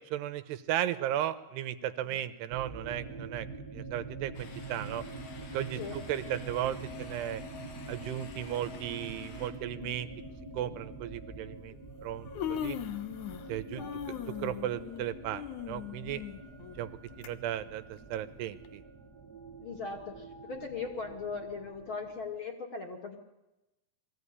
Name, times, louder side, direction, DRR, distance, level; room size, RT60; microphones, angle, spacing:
voice 1, 0.0-5.0 5.5-5.8 6.1-7.4 7.9-10.1 10.5-11.8 12.0-12.8 13.5-16.2 16.8-16.9 17.2-18.8, right 12 dB, 80° right, 12 dB, 3.0 m, -35 dB
sound 1, 2.5-22.3, right 2 dB, 55° right, 1.0 m, -45 dB
sound 2, 4.3-9.5, left 4 dB, 90° left, 5.1 m, -52 dB
Human voice, 8.5-8.8 9.8-9.9 10.5-10.7 11.7-11.8 12.1-13.5 13.8-17.3 17.7-17.8 18.6-18.7, left 10 dB, 70° left, 1.9 m, -39 dB
voice 2, 9.6-10.1 13.7-14.2 19.6-23.2, left 4 dB, 40° left, 3 dB, 2.3 m, -40 dB
22.5 x 16.0 x 9.9 m, 0.95 s
omnidirectional pair, 4.8 m